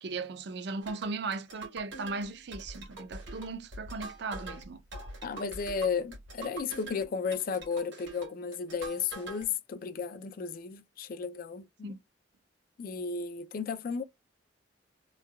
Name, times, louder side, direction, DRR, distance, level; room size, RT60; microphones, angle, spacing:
voice 1, 0.0-4.8 11.8-12.0, right 3 dB, 65° right, 0.5 m, -37 dB
sound 1, 0.8-9.4, right 2 dB, 90° right, 1.5 m, -44 dB
voice 2, 5.2-11.9 12.8-14.0, left 5 dB, 50° left, 0.4 m, -34 dB
3.2 x 2.2 x 2.2 m
head